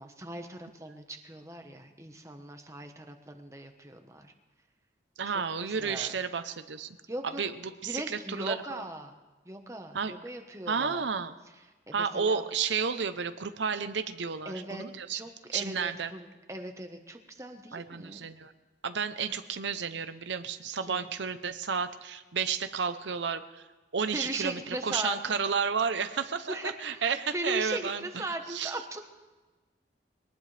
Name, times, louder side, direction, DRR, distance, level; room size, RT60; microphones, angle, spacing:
voice 1, 0.0-4.3 5.2-6.1 7.1-7.4 7.8-9.2 9.4-11.0 11.9-12.4 14.4-14.9 15.1-18.3 20.8-21.1 24.1-25.4 26.5-27.0 27.3-29.0, right 1 dB, 15° right, 5 dB, 1.2 m, -39 dB
voice 2, 5.2-6.9 7.4-8.8 9.9-10.1 10.7-11.3 11.9-15.2 15.5-16.1 17.7-18.5 18.8-23.6 23.9-28.8, right 6 dB, 80° right, 10 dB, 0.8 m, -32 dB
22.0 x 19.0 x 3.4 m, 1.2 s
head